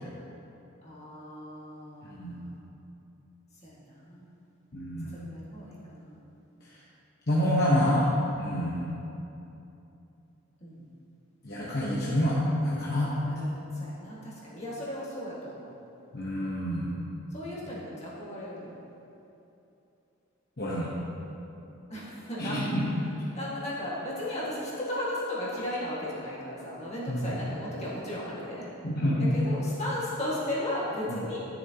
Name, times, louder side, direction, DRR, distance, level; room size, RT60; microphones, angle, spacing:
voice 1, 0.8-2.5 3.6-4.2 5.1-6.2 10.6-10.8 13.2-15.7 17.3-18.7 21.9-22.6 23.3-28.7 29.3-31.4, left 1 dB, 30° left, -7 dB, 1.8 m, -36 dB
voice 2, 2.1-2.4 4.7-5.1 7.3-8.9 11.4-13.1 16.1-16.9 20.6-20.9 22.4-22.9 27.1-27.3 28.8-29.3 31.1-31.2, equal, 50° left, -7 dB, 1.1 m, -27 dB
12.0 x 7.2 x 2.9 m, 2.9 s
head